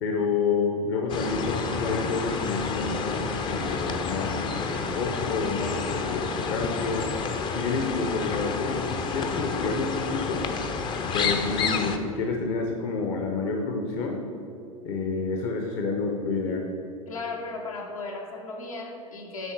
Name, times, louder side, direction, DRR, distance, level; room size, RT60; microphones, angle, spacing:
voice 1, 0.0-7.1 7.5-10.5 11.1-14.3 14.8-16.7, left 4 dB, 50° left, 2 dB, 0.9 m, -29 dB
sound 1, 1.1-12.0, left 5 dB, 25° left, 0.6 m, -30 dB
voice 2, 17.1-19.5, left 3 dB, 80° left, -1 dB, 1.3 m, -36 dB
10.0 x 3.8 x 4.7 m, 2.6 s
figure-of-eight pair, 85°, 18 cm